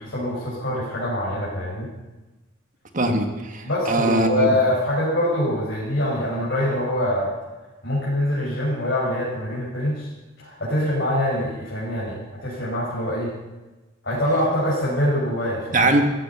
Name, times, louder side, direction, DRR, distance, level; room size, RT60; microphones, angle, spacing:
voice 1, 0.0-1.9 3.6-7.3 7.8-10.1 10.4-13.3 14.0-15.9, left 1 dB, 55° left, -8 dB, 5.6 m, -24 dB
voice 2, 2.9-4.5 15.7-16.0, right 2 dB, 40° right, 5 dB, 1.6 m, -21 dB
15.0 x 15.0 x 5.6 m, 1.1 s
head